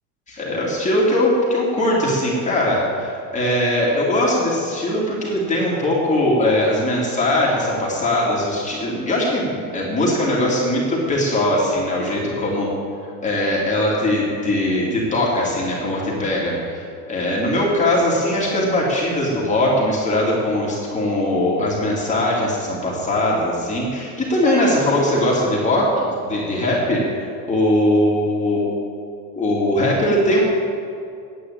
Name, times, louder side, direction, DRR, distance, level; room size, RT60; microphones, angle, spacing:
voice 1, 0.3-12.7 13.2-28.7 29.4-30.4, left 1 dB, 15° left, -5 dB, 2.6 m, -20 dB
10.0 x 8.6 x 8.7 m, 2.4 s
cardioid pair, 135°, 41 cm